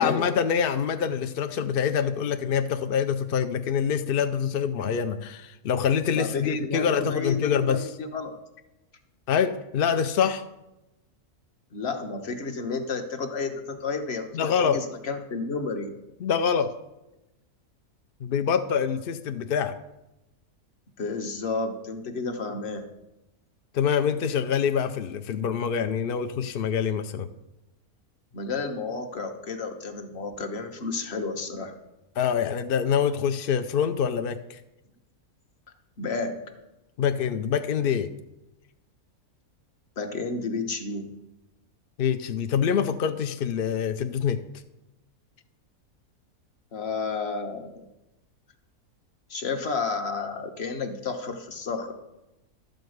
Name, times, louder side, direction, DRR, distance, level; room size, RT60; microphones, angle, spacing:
voice 1, 0.0-7.9 9.3-10.5 14.3-14.8 16.2-16.7 18.2-19.8 23.7-27.3 32.2-34.6 37.0-38.1 42.0-44.4, left 7 dB, 65° left, 8 dB, 0.5 m, -25 dB
voice 2, 6.1-8.3 11.7-15.9 21.0-22.9 28.3-31.7 36.0-36.4 40.0-41.1 46.7-47.8 49.3-51.9, left 4 dB, 50° left, 5 dB, 1.3 m, -31 dB
12.0 x 5.2 x 7.9 m, 0.94 s
omnidirectional pair, 1.6 m